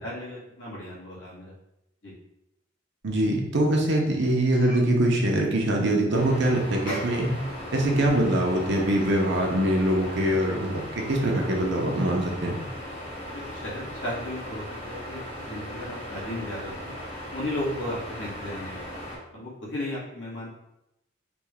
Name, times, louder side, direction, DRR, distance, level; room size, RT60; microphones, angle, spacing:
voice 1, 0.0-1.5 2.0-2.1 4.5-4.8 6.9-7.1 13.3-16.9 17.3-20.5, left 1 dB, 65° left, -6 dB, 1.4 m, -35 dB
voice 2, 3.0-7.3 7.7-12.6, right 1 dB, 65° right, 0 dB, 0.7 m, -23 dB
sound 1, 6.1-19.2, equal, 35° left, 1.2 m, -38 dB
3.3 x 2.3 x 3.3 m, 0.85 s
head